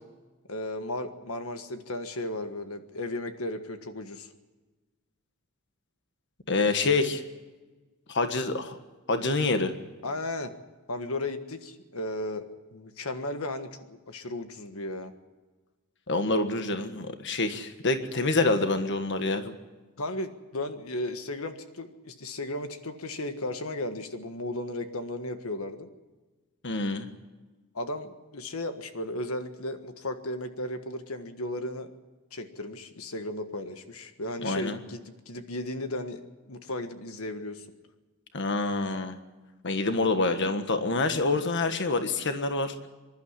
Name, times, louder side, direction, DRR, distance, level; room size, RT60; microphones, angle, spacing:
voice 1, 0.5-4.3 10.0-10.5 10.9-15.1 20.0-25.9 27.7-31.9 32.3-35.0 35.2-37.7, left 1 dB, 80° left, 8 dB, 1.5 m, -35 dB
voice 2, 6.5-7.2 8.1-8.8 9.1-9.7 16.1-19.5 26.6-27.1 34.4-34.8 38.3-39.1 39.6-42.9, left 3 dB, 55° left, 8 dB, 1.5 m, -27 dB
26.0 x 12.0 x 9.6 m, 1.3 s
head